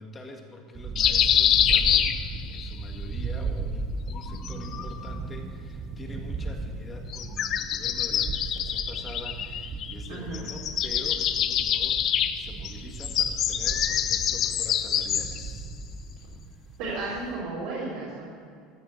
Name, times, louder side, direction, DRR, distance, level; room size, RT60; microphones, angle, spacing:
voice 1, 0.0-15.7, left 2 dB, 20° left, 2 dB, 1.9 m, -44 dB
sound 1, 0.7-17.4, right 4 dB, 30° right, 0.9 m, -36 dB
sound 2, 1.0-2.7 4.1-5.2 7.1-10.1 10.3-15.5, left 9 dB, 45° left, 0.7 m, -26 dB
voice 2, 10.1-10.4 16.8-18.2, right 3 dB, 75° right, -8 dB, 4.1 m, -33 dB
14.0 x 6.7 x 8.0 m, 2.3 s
supercardioid pair, 120°, 0 cm